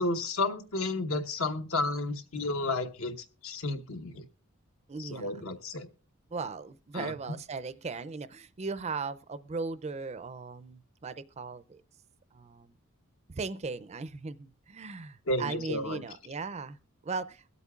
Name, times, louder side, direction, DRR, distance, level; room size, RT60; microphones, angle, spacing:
voice 1, 0.0-4.2 5.0-5.9 6.9-7.1 15.3-16.0, left 2 dB, 70° left, 1.1 m, -32 dB
voice 2, 4.9-5.4 6.3-11.8 12.3-12.8 13.3-16.8 17.0-17.4, right 4 dB, 30° right, 0.4 m, -38 dB
22.0 x 8.2 x 2.4 m
head